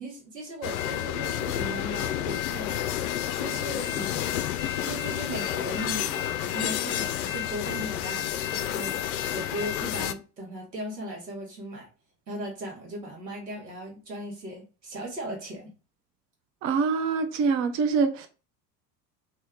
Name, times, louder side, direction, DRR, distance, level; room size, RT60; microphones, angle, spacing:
voice 1, 0.0-4.3 4.8-11.9 12.3-15.7, right 1 dB, 80° right, 1.4 m, -38 dB
sound 1, 0.6-10.1, left 11 dB, 60° left, 0.5 m, -30 dB
voice 2, 16.6-18.3, right 5 dB, 30° right, 0.5 m, -25 dB
3.2 x 2.7 x 3.6 m
figure-of-eight pair, 65°, 49 cm